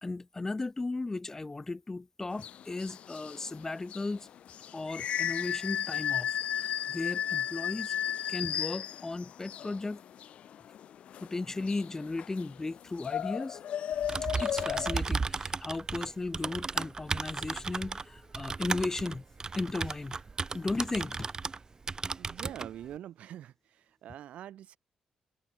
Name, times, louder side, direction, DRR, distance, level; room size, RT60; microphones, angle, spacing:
voice 1, 0.0-4.3 4.7-7.9 8.3-10.0 11.2-13.6 14.4-19.2 19.5-20.2 20.5-21.3, left 3 dB, 20° left, 0.8 m, -36 dB
sound 1, 2.3-15.0, left 10 dB, 70° left, 0.8 m, -35 dB
Typing, 13.9-21.6 21.9-22.7, right 4 dB, 35° right, 0.8 m, -35 dB
voice 2, 22.1-24.8, right 11 dB, 80° right, 1.6 m, -45 dB
cardioid pair, 80°, 2 cm